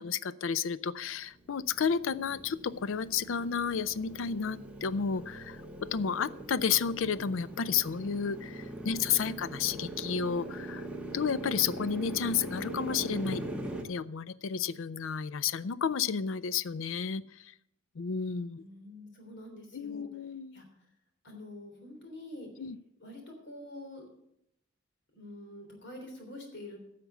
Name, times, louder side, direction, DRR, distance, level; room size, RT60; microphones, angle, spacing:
voice 1, 0.0-5.6 5.9-10.9 11.1-13.4 13.9-17.2 18.0-18.6 19.7-20.6 22.6-22.8, left 6 dB, 75° left, 17 dB, 0.5 m, -31 dB
Motorcycle, 1.2-13.8, right 1 dB, 5° right, 1.4 m, -41 dB
voice 2, 18.6-20.1 20.5-20.6 21.2-22.5 23.0-24.0 25.1-26.8, left 1 dB, 60° left, 2 dB, 3.4 m, -46 dB
11.0 x 6.8 x 8.0 m, 0.77 s
head